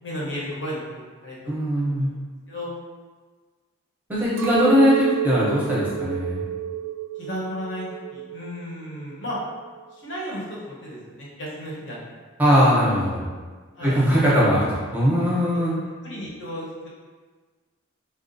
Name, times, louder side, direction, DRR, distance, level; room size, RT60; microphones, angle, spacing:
voice 1, 0.0-1.4 1.7-2.1 2.5-2.7 7.2-9.4 9.9-12.2 13.8-14.0 15.5-15.7 16.0-16.9, equal, 60° left, -6 dB, 0.9 m, -34 dB
voice 2, 1.5-2.1 4.1-6.4 12.4-13.3 13.8-15.7, equal, 10° right, -8 dB, 0.6 m, -20 dB
Chink clink, 4.4-8.7 9.0-9.8, right 11 dB, 80° right, 0.4 m, -30 dB
3.6 x 2.3 x 2.5 m, 1.4 s
head